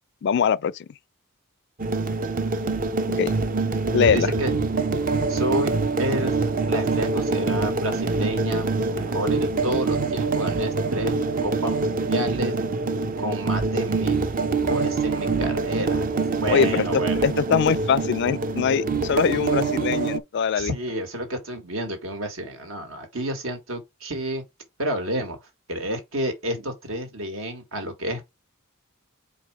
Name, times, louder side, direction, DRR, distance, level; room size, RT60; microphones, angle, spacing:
voice 1, 0.2-0.9 3.2-3.3 3.9-4.3 16.5-20.7, left 7 dB, 55° left, 0.3 m, -22 dB
sound 1, 1.8-20.2, right 3 dB, 40° right, 0.7 m, -25 dB
voice 2, 4.0-4.5 5.3-5.7 6.0-6.3 6.7-8.7 8.9-11.1 11.4-12.5 13.2-14.2 14.6-16.0 16.4-17.2 20.6-24.4 24.8-25.4 25.7-28.2, equal, 70° right, 1.9 m, -29 dB
4.8 x 4.3 x 4.8 m
head